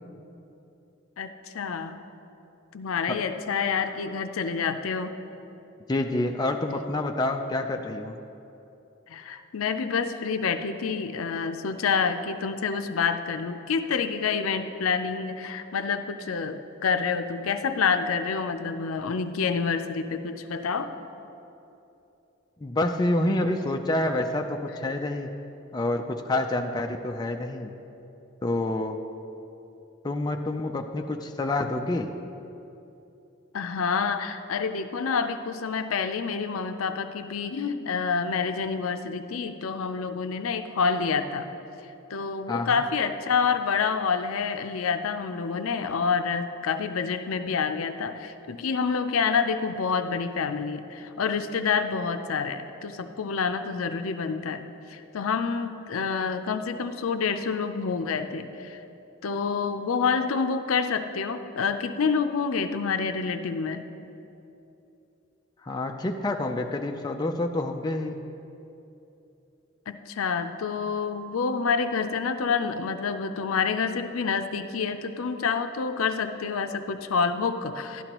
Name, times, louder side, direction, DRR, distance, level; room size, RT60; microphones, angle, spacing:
voice 1, 1.2-2.0 2.7-5.1 9.1-20.9 33.5-41.5 42.1-54.6 54.9-58.8 59.2-63.9 69.9-78.0, left 5 dB, 80° left, 8 dB, 0.5 m, -28 dB
voice 2, 5.9-8.2 22.6-25.3 25.7-27.7 28.4-29.0 30.0-32.1 42.5-42.8 65.6-68.2, left 2 dB, 20° left, 4 dB, 0.3 m, -28 dB
11.5 x 11.0 x 3.0 m, 2.9 s
head